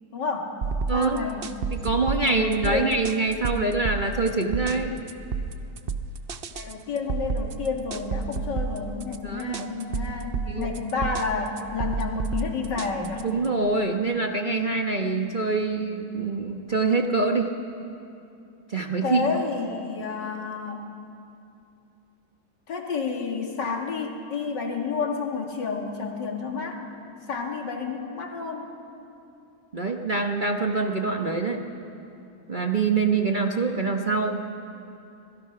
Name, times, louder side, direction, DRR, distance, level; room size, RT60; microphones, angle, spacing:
voice 1, 0.1-0.5 0.9-1.5 2.2-3.0 6.5-13.3 19.0-20.9 22.7-26.8 27.3-28.7, left 4 dB, 75° left, 2 dB, 2.7 m, -30 dB
sound 1, 0.6-13.5, right 4 dB, 50° right, 0.6 m, -31 dB
voice 2, 0.9-1.3 1.7-5.0 9.2-9.8 10.5-10.7 13.2-17.5 18.7-19.3 29.7-31.6 32.5-34.4, right 3 dB, 30° right, 3 dB, 1.1 m, -25 dB
26.0 x 20.0 x 5.8 m, 2.7 s
omnidirectional pair, 1.9 m